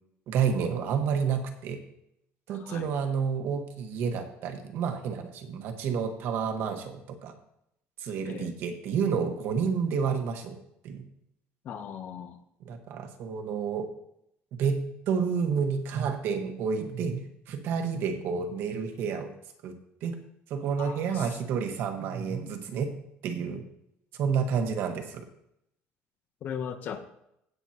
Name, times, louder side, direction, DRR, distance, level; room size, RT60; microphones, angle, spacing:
voice 1, 0.3-1.8 2.5-7.3 8.0-10.6 10.8-11.0 12.6-13.9 14.6-19.3 19.6-19.7 20.0-20.2 20.5-22.9 23.2-23.6 24.2-25.2, right 6 dB, 55° right, 6 dB, 1.4 m, -30 dB
voice 2, 2.6-2.9 8.2-8.5 11.6-12.4 20.8-21.2 26.4-27.0, left 7 dB, 45° left, 9 dB, 0.9 m, -38 dB
16.5 x 7.9 x 2.9 m, 0.78 s
cardioid pair, 165°, 5 cm